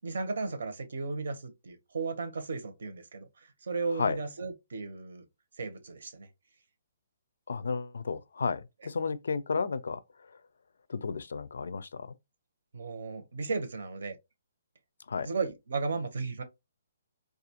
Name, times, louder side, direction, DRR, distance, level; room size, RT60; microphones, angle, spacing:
voice 1, 0.0-5.2 5.6-6.3 12.7-14.2 15.2-16.4, right 4 dB, 70° right, 0.7 m, -35 dB
voice 2, 7.5-10.0 10.9-12.1 15.1-15.3, left 5 dB, 80° left, 0.4 m, -32 dB
2.5 x 2.3 x 2.8 m
hypercardioid pair, 175°, 0 cm